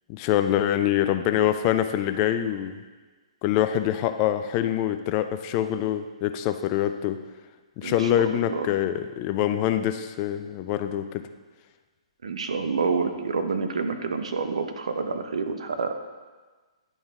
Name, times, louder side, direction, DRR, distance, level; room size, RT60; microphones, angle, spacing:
voice 1, 0.1-2.8 3.4-7.2 7.8-11.2, left 11 dB, 35° left, 9 dB, 0.4 m, -25 dB
voice 2, 7.8-8.2 8.5-8.7 12.2-16.1, right 4 dB, 75° right, 7 dB, 0.8 m, -28 dB
10.5 x 3.9 x 3.6 m, 1.4 s
hypercardioid pair, 130°, 3 cm